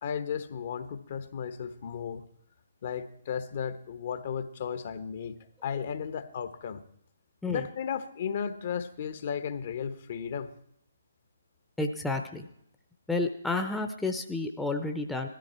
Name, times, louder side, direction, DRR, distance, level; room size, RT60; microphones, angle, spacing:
voice 1, 0.0-2.3 2.8-6.8 7.5-10.5, left 7 dB, 45° left, 11 dB, 1.1 m, -35 dB
voice 2, 11.8-12.5 13.1-15.3, left 3 dB, 5° left, 4 dB, 0.9 m, -31 dB
17.5 x 13.0 x 4.4 m, 0.72 s
figure-of-eight pair, 135°, 0 cm